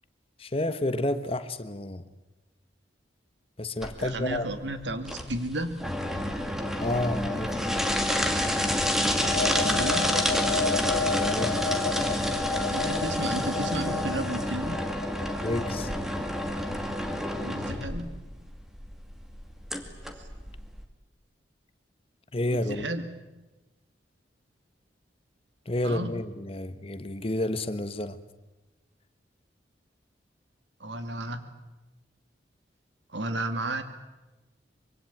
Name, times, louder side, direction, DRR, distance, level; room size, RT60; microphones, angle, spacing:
voice 1, 0.4-2.1 3.6-4.5 6.8-7.7 11.1-11.6 15.4-15.9 22.3-22.9 25.7-28.2, left 1 dB, 30° left, 12 dB, 1.2 m, -30 dB
sound 1, 3.8-20.8, left 1 dB, ahead, 2.3 m, -29 dB
voice 2, 4.0-5.9 9.5-10.2 12.7-14.8 17.4-18.1 22.5-23.0 25.8-26.1 30.8-31.4 33.1-33.8, right 1 dB, 85° right, 9 dB, 2.5 m, -33 dB
sound 2, 9.0-16.5, left 4 dB, 75° left, 1.2 m, -33 dB
25.0 x 23.5 x 9.1 m, 1.1 s
head